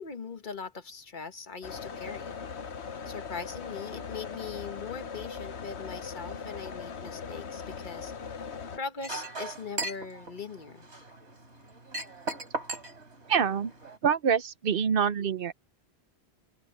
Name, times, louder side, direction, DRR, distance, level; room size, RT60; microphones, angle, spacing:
voice 1, 0.0-2.4 3.0-8.1 8.8-10.9, left 5 dB, 45° left, 1.3 m, -40 dB
sound 1, 1.6-8.8, left 6 dB, 80° left, 1.3 m, -39 dB
Chink clink, 9.0-14.0, right 2 dB, 85° right, 3.9 m, -38 dB
voice 2, 13.3-13.7 14.0-15.5, right 7 dB, 60° right, 0.9 m, -26 dB
open air
omnidirectional pair, 1.1 m